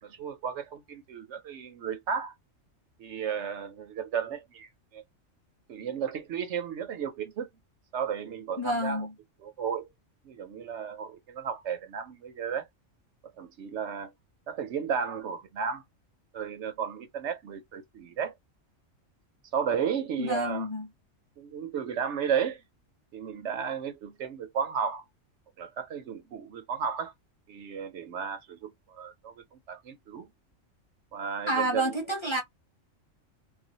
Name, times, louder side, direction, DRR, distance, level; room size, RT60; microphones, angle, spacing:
voice 1, 0.0-2.3 3.0-5.0 5.7-7.5 7.9-9.1 9.4-9.9 10.2-12.7 13.4-14.1 14.5-15.8 16.3-18.3 19.5-20.7 21.4-22.6 23.1-25.0 25.6-27.1 27.5-30.3 31.1-31.9, right 7 dB, 70° right, 0.8 m, -33 dB
voice 2, 8.6-9.1 20.2-20.9 31.5-32.4, equal, 25° left, 0.7 m, -29 dB
2.4 x 2.1 x 3.9 m
omnidirectional pair, 1.4 m